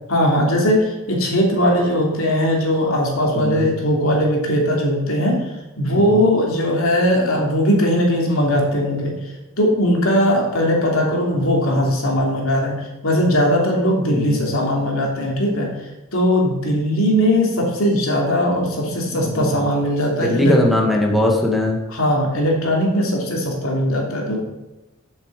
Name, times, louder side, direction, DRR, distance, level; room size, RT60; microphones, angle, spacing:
voice 1, 0.1-5.4 5.8-9.1 9.6-15.7 16.1-20.6 21.9-24.4, equal, 70° left, -1 dB, 3.0 m, -19 dB
voice 2, 3.3-3.7 5.9-6.2 14.1-14.4 19.1-19.7 20.2-21.8, left 1 dB, ahead, 0 dB, 1.8 m, -20 dB
8.3 x 7.0 x 7.5 m, 1.0 s
head